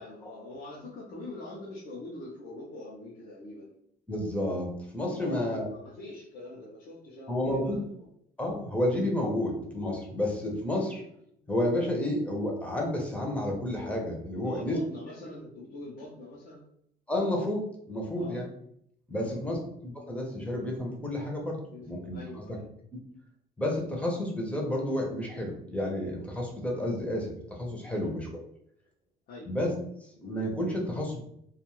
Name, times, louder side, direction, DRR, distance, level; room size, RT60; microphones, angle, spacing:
voice 1, 0.0-3.7 5.1-8.1 14.3-16.6 18.1-18.4 19.2-19.6 21.7-21.9 22.1-22.7 28.0-28.1 29.3-29.5, left 2 dB, 55° left, -5 dB, 0.7 m, -44 dB
voice 2, 4.1-5.7 7.3-7.8 8.4-11.0 11.5-14.8 17.1-18.5 19.1-21.6 21.9-22.2 23.6-28.3 29.5-29.7 30.0-31.2, left 1 dB, 5° left, -1 dB, 0.7 m, -31 dB
2.4 x 2.4 x 3.0 m, 0.72 s
cardioid pair, 110°, 17 cm